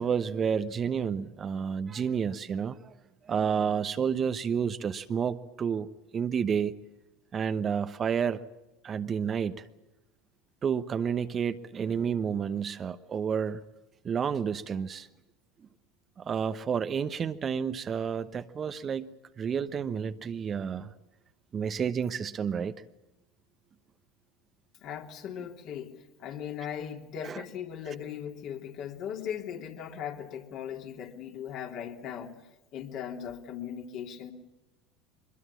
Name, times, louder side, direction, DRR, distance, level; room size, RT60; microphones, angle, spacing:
voice 1, 0.0-2.9 3.3-5.9 6.1-6.8 7.3-8.4 8.8-9.6 10.6-13.6 14.0-15.1 16.2-19.1 19.4-20.9 21.5-22.8 27.2-27.4, right 7 dB, 30° right, 11 dB, 1.0 m, -30 dB
voice 2, 24.8-25.9 26.2-32.3 32.7-34.3, left 8 dB, 50° left, 3 dB, 3.2 m, -38 dB
24.0 x 22.0 x 7.4 m, 1.0 s
figure-of-eight pair, 75°, 0 cm